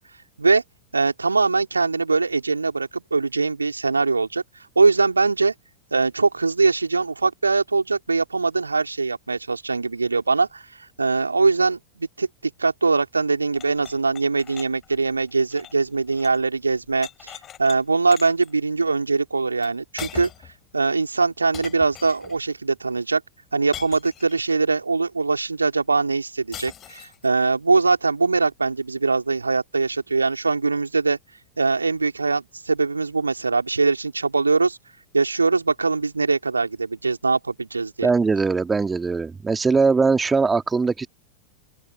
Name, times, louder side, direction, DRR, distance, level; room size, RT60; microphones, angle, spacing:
voice 1, 0.9-4.4 4.8-5.5 5.9-12.3 12.6-20.3 20.7-23.2 23.5-31.2 31.6-34.8 35.1-38.1, right 4 dB, 80° right, 3.9 m, -22 dB
sound 1, 13.5-16.4 16.7-17.8 18.1-18.5 19.6-19.7 20.0-20.6 21.5-22.4 23.7-24.5 26.5-27.3, left 10 dB, 30° left, 5.3 m, -41 dB
voice 2, 38.0-41.1, right 4 dB, 15° right, 2.0 m, -20 dB
open air
figure-of-eight pair, 90°, 0 cm